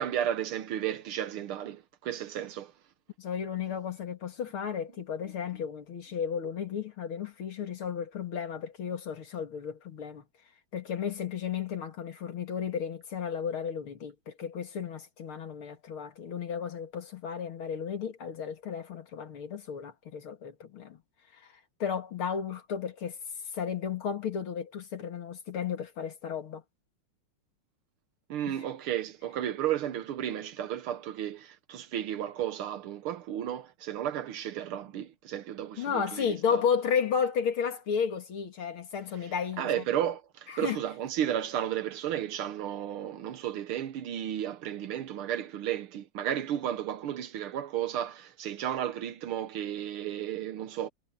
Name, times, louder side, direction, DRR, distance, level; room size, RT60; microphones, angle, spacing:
voice 1, 0.0-2.7 28.3-36.6 39.2-50.9, right 10 dB, 80° right, 1.8 m, -33 dB
voice 2, 3.2-10.2 10.7-21.0 21.8-23.2 23.5-26.6 28.5-28.6 35.8-39.8 40.5-40.8, left 7 dB, 70° left, 2.9 m, -33 dB
omnidirectional pair, 2.4 m